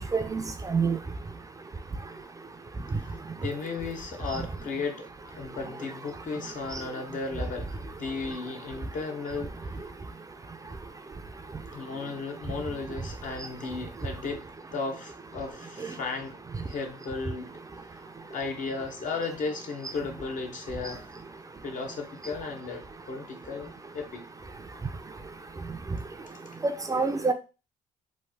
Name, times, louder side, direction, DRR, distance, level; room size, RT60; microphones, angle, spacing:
voice 1, 0.1-1.0 26.9-27.3, right 5 dB, 20° right, 0.4 m, -26 dB
voice 2, 2.9-9.7 11.7-14.5 14.7-16.4 16.7-17.5 17.8-18.0 18.3-21.1 21.6-24.3 26.2-26.4, left 4 dB, 55° left, 0.8 m, -35 dB
3.1 x 2.0 x 3.4 m
cardioid pair, 80°, 15 cm